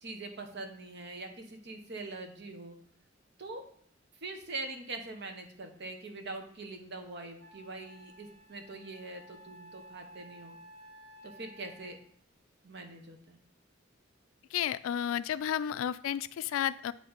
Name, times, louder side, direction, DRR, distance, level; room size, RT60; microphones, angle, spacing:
voice 1, 0.0-2.8 3.4-3.6 4.2-10.6 11.2-12.0 12.6-13.4, right 2 dB, 60° right, 5 dB, 0.9 m, -43 dB
Wind instrument woodwind instrument, 6.7-6.8 7.4-12.0, equal, 80° right, 2.2 m, -54 dB
voice 2, 14.5-16.9, left 10 dB, 85° left, 16 dB, 0.3 m, -32 dB
9.5 x 3.3 x 3.9 m, 0.62 s
head